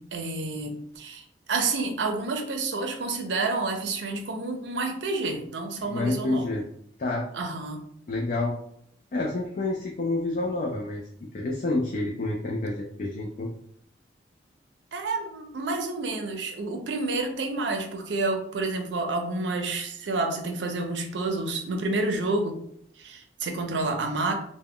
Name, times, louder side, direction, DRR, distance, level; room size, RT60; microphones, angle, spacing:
voice 1, 0.0-6.5 7.3-7.8 14.9-22.6 23.0-24.3, right 3 dB, 80° right, 5 dB, 0.5 m, -29 dB
voice 2, 5.8-6.6 7.0-7.3 8.1-8.5 9.1-11.1 11.3-13.5, left 2 dB, 45° left, -1 dB, 0.4 m, -28 dB
2.3 x 2.1 x 3.5 m, 0.69 s
head